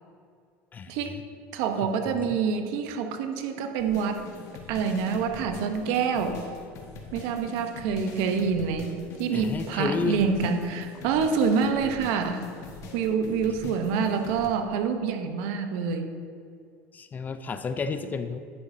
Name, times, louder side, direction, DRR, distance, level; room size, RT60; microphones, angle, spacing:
voice 1, 0.7-1.2 1.8-2.4 9.3-10.2 13.6-13.8 16.9-18.4, left 5 dB, 25° left, 10 dB, 0.5 m, -32 dB
voice 2, 1.5-4.2 4.7-6.4 7.1-12.4 12.9-16.1, right 6 dB, 70° right, 6 dB, 0.8 m, -27 dB
sound 1, 3.8-14.5, left 3 dB, 55° left, 1.5 m, -43 dB
10.0 x 7.8 x 2.7 m, 2.2 s
supercardioid pair, 105°, 6 cm